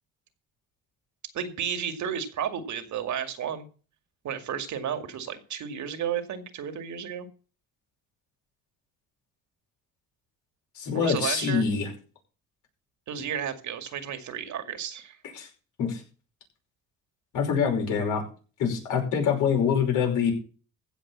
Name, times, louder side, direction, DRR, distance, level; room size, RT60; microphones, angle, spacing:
voice 1, 1.3-3.7 4.2-7.3 10.9-11.7 13.1-15.2, right 8 dB, 70° right, 8 dB, 2.2 m, -32 dB
voice 2, 10.8-11.9 15.3-15.5 15.8-16.0 17.3-18.2 18.6-20.3, left 6 dB, 90° left, 1 dB, 5.5 m, -25 dB
15.5 x 5.3 x 7.4 m, 0.37 s
cardioid pair, 90°, 30 cm